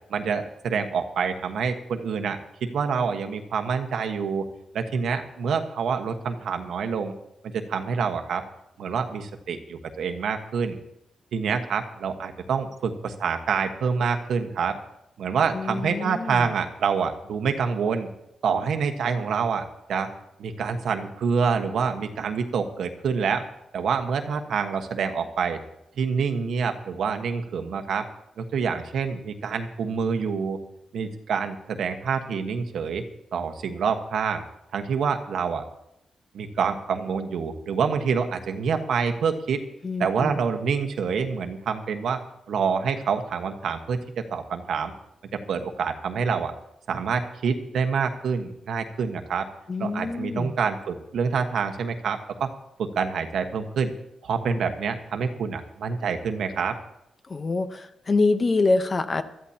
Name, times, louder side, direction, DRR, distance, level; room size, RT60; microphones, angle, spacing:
voice 1, 0.1-4.5 4.7-7.1 7.4-8.4 8.8-10.8 11.3-14.8 15.2-18.1 18.4-20.1 20.4-23.4 23.7-25.6 26.0-28.0 28.4-30.6 30.9-33.0 33.3-34.4 34.7-35.6 36.3-39.6 40.0-42.2 42.5-44.9 45.3-46.5 46.9-49.5 49.8-52.5 52.8-53.9 54.2-56.8, right 6 dB, 70° right, 6 dB, 1.3 m, -27 dB
voice 2, 15.5-16.5 39.8-40.3 49.7-50.6 57.3-59.2, left 3 dB, 30° left, 9 dB, 0.8 m, -25 dB
21.5 x 13.5 x 2.9 m, 0.85 s
wide cardioid pair, 155°, 0 cm